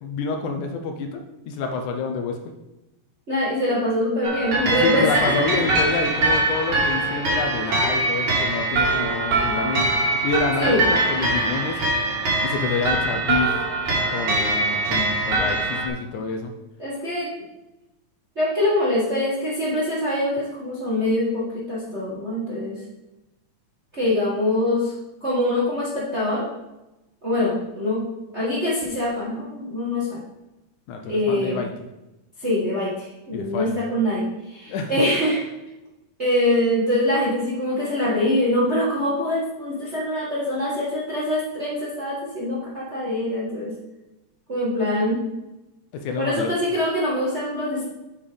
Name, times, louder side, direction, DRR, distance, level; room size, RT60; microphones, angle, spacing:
voice 1, 0.0-2.4 4.8-11.8 12.4-13.5 14.0-16.5 30.9-31.7 33.3-33.8 34.7-34.9 45.9-46.5, left 4 dB, 75° left, 4 dB, 2.0 m, -28 dB
voice 2, 3.3-5.4 10.6-10.8 16.8-17.3 18.3-22.8 23.9-24.9 25.2-26.5 27.2-28.0 28.3-30.2 31.0-31.6 32.4-35.5 36.2-43.7 44.5-45.2 46.2-47.8, left 1 dB, 35° right, -6 dB, 1.1 m, -24 dB
sound 1, 4.2-15.9, right 2 dB, 65° right, 3.2 m, -23 dB
7.3 x 5.4 x 5.1 m, 0.97 s
omnidirectional pair, 3.7 m